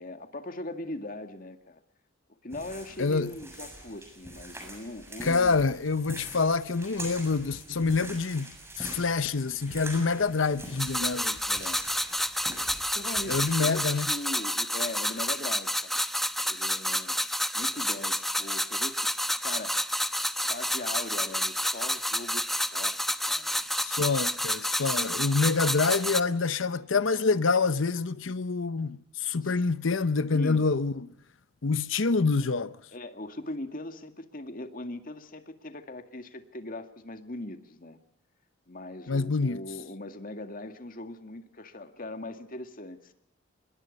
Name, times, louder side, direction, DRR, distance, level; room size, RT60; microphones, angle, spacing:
voice 1, 0.0-1.8 2.4-5.6 11.5-11.8 12.9-16.0 16.4-17.2 17.5-19.8 20.5-22.5 22.7-23.0 23.3-23.6 29.4-29.7 30.3-30.6 32.9-38.0 38.7-43.1, left 2 dB, 45° left, 2.1 m, -40 dB
sound 1, 2.5-14.1, right 1 dB, 15° right, 7.2 m, -44 dB
voice 2, 3.0-3.3 5.2-11.4 13.3-14.1 23.8-31.1 31.6-32.7 39.1-39.6, left 4 dB, 80° left, 0.8 m, -26 dB
sound 2, 10.8-26.2, equal, ahead, 0.9 m, -29 dB
25.5 x 21.5 x 5.4 m
head